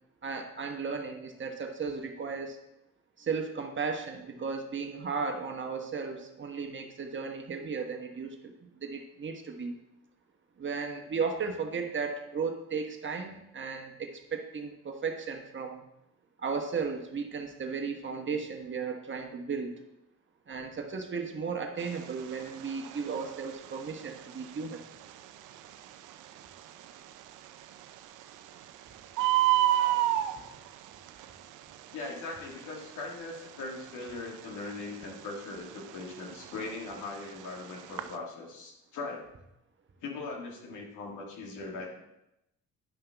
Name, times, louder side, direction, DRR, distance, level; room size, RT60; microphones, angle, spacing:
voice 1, 0.2-2.6 3.2-9.8 10.6-15.8 16.4-19.8 20.5-24.8, right 5 dB, 40° right, 4 dB, 1.3 m, -35 dB
Bird, 21.8-38.2, right 14 dB, 85° right, 0.6 m, -33 dB
voice 2, 31.9-39.3 40.0-42.0, left 3 dB, 85° left, 0 dB, 1.9 m, -40 dB
10.0 x 5.7 x 3.5 m, 0.86 s
cardioid pair, 90°, 30 cm